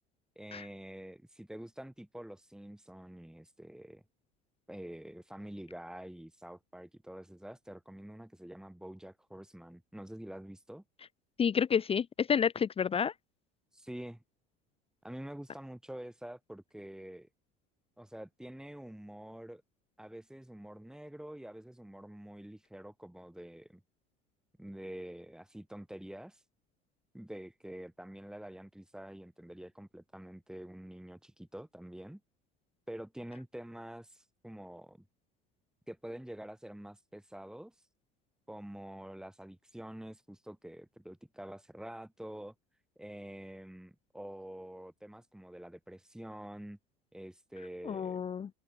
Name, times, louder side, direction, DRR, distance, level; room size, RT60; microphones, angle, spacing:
voice 1, 0.4-4.0 4.7-10.8 13.7-14.2 15.0-17.3 18.0-19.6 20.0-23.8 24.6-26.4 27.1-32.2 32.9-35.0 35.9-37.9 38.5-42.5 43.0-46.8 47.1-48.3, right 1 dB, 5° right, 7.2 m, -47 dB
voice 2, 11.4-13.1 47.8-48.5, left 7 dB, 30° left, 1.0 m, -29 dB
hypercardioid pair, 85°, 20 cm